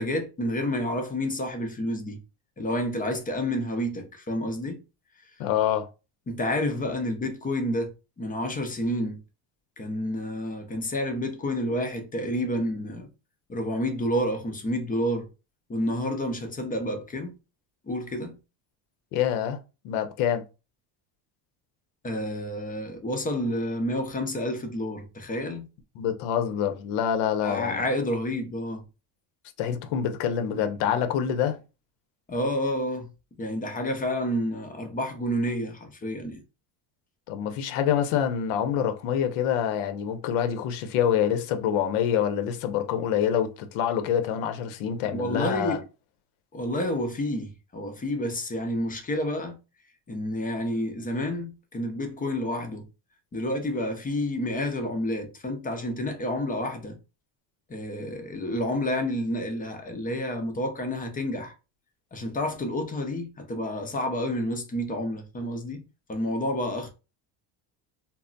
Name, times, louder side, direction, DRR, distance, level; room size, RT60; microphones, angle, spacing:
voice 1, 0.0-2.2 2.6-4.8 6.3-9.2 9.8-13.1 13.5-15.3 15.7-17.3 17.9-18.4 22.0-25.7 27.4-28.8 32.3-33.1 33.4-36.4 45.1-45.8 46.5-49.6 50.1-52.8 53.3-57.0 57.7-61.5 62.1-65.8 66.1-66.9, left 1 dB, 20° left, 0.5 m, -29 dB
voice 2, 5.4-5.9 19.1-19.6 19.8-20.4 26.0-27.8 29.6-31.6 37.3-45.8, left 9 dB, 75° left, 0.7 m, -26 dB
2.2 x 2.0 x 3.8 m
cardioid pair, 110°, 50 cm